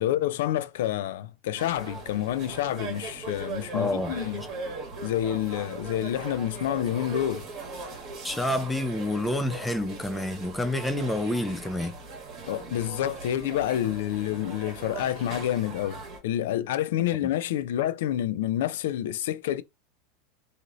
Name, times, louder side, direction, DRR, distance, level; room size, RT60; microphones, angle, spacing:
voice 1, 0.0-4.4 5.0-7.5 12.5-19.6, left 12 dB, 80° left, 0.3 m, -28 dB
sound 1, 1.6-16.2, right 4 dB, 35° right, 1.4 m, -40 dB
voice 2, 3.7-4.2 8.2-11.9 17.2-17.3, left 1 dB, 5° left, 0.5 m, -28 dB
3.0 x 2.6 x 2.5 m
supercardioid pair, 150°, 0 cm